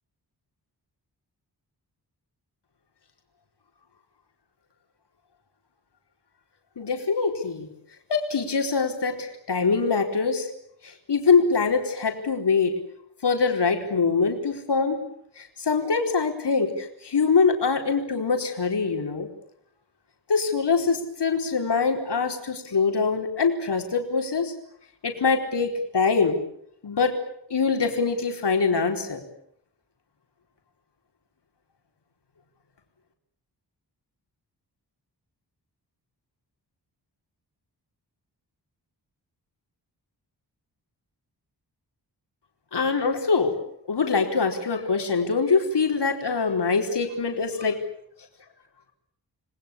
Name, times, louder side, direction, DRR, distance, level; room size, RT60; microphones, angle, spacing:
voice 1, 6.8-7.7 8.1-10.5 10.8-12.7 13.2-15.0 15.4-19.3 20.3-24.5 25.0-26.4 26.8-27.2 27.5-29.2 42.7-43.6 43.9-47.8, left 4 dB, 75° left, 3 dB, 4.5 m, -24 dB
30.0 x 20.5 x 8.6 m, 0.74 s
wide cardioid pair, 110°, 41 cm